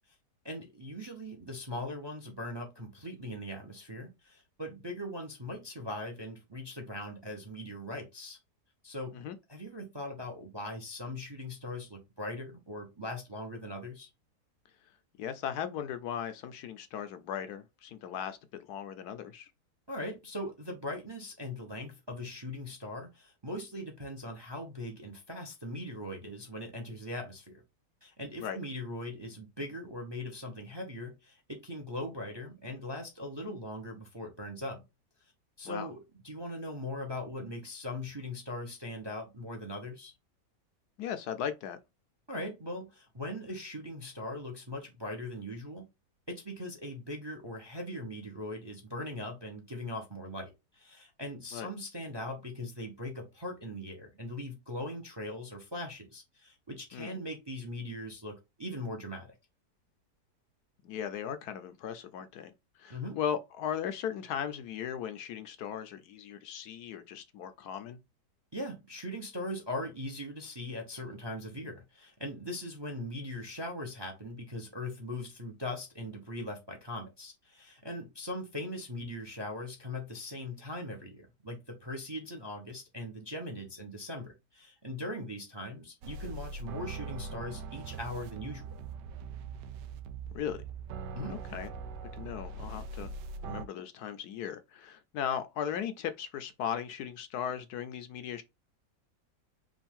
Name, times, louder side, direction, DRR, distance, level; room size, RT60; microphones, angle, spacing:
voice 1, 0.4-8.4 8.8-9.2 9.5-14.1 19.9-27.6 28.0-34.8 35.6-40.1 42.3-45.8 46.3-59.3 62.9-63.2 68.5-88.7 91.1-91.4, left 1 dB, 25° right, 0.6 m, -40 dB
voice 2, 15.2-18.4 18.7-19.5 28.4-28.6 35.6-35.9 41.0-41.8 51.5-51.7 56.9-57.2 60.8-62.5 62.8-68.0 90.3-90.6 91.3-91.7 92.1-93.1 93.4-98.4, left 8 dB, 70° left, 1.1 m, -37 dB
sound 1, 86.0-93.6, right 4 dB, 85° right, 1.2 m, -41 dB
5.2 x 2.5 x 3.6 m
omnidirectional pair, 1.8 m